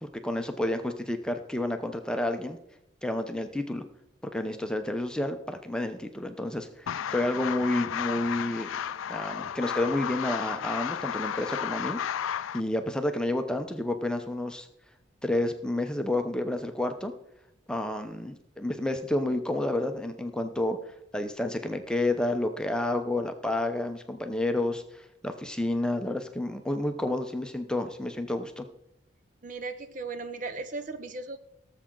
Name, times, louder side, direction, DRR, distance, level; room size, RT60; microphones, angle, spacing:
voice 1, 0.0-2.6 3.0-3.8 4.3-8.7 9.1-14.7 15.2-17.1 17.7-20.8 21.1-28.6, left 1 dB, 5° left, 6 dB, 0.7 m, -30 dB
sound 1, 6.9-12.6, left 8 dB, 90° left, 0.4 m, -33 dB
voice 2, 29.4-31.4, right 3 dB, 40° right, 10 dB, 0.6 m, -37 dB
17.5 x 7.4 x 3.9 m, 0.81 s
head